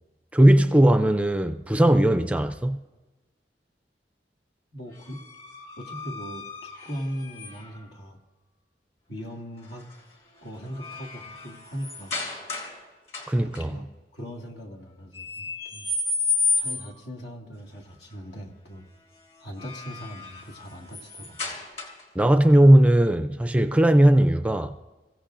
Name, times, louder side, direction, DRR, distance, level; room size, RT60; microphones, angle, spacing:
voice 1, 0.3-2.8 13.3-13.7 22.2-24.7, right 1 dB, 10° right, 0.4 m, -18 dB
voice 2, 4.7-5.2 5.8-8.2 9.1-9.9 10.4-12.2 13.4-13.9 14.1-15.9 16.5-18.9 19.4-21.6, equal, 75° left, 2.2 m, -39 dB
sound 1, 4.9-7.8 9.6-10.0 10.4-12.8 13.1-13.6 15.1-17.0 19.3-22.2, left 3 dB, 40° left, 3.7 m, -32 dB
28.0 x 15.5 x 2.6 m
head